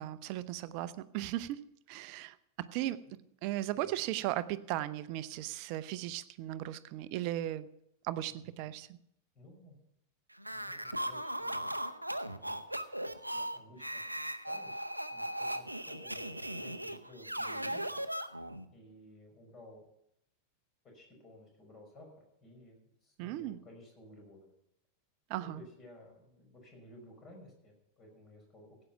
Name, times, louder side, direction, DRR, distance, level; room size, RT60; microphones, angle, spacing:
voice 1, 0.0-3.0 3.4-7.7 8.0-9.0 23.2-23.6 25.3-25.6, right 14 dB, 45° right, 14 dB, 0.7 m, -37 dB
voice 2, 9.3-9.7 10.5-11.7 12.3-12.6 13.3-14.0 14.5-14.8 15.1-18.0 18.7-19.8 20.9-22.1 22.4-24.5 25.4-28.8, left 1 dB, 30° left, 2 dB, 5.7 m, -55 dB
sound 1, 10.4-18.7, right 1 dB, 85° right, 0.7 m, -38 dB
16.5 x 8.7 x 5.9 m, 0.75 s
figure-of-eight pair, 90°, 0 cm